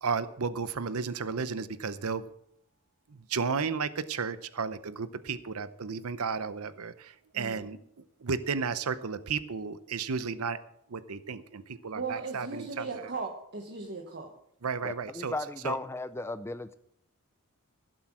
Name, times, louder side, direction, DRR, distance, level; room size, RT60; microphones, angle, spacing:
voice 1, 0.0-2.3 3.1-7.8 8.2-10.6 10.9-13.0 14.6-15.3 15.6-15.8, right 5 dB, 75° right, 14 dB, 0.7 m, -33 dB
voice 2, 7.3-7.8 11.9-14.3, right 4 dB, 50° right, 2 dB, 1.3 m, -38 dB
voice 3, 14.8-16.8, left 2 dB, 10° left, 13 dB, 0.4 m, -36 dB
16.0 x 7.8 x 6.1 m, 0.72 s
head